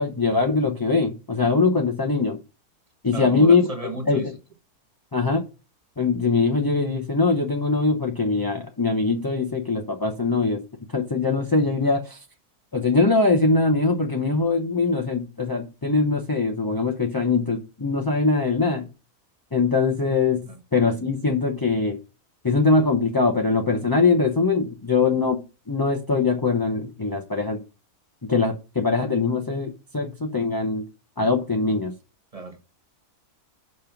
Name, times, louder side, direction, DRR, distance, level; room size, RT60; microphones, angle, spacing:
voice 1, 0.0-2.4 3.0-3.7 4.1-4.3 5.1-5.4 6.0-10.6 10.9-12.2 12.7-18.8 19.5-22.0 22.4-25.4 25.7-27.6 28.3-30.8 31.2-31.9, left 3 dB, 35° left, 0.3 m, -22 dB
voice 2, 3.1-4.3 20.5-20.6 32.3-32.6, right 3 dB, 25° right, 1.1 m, -34 dB
5.5 x 5.2 x 5.8 m
omnidirectional pair, 1.6 m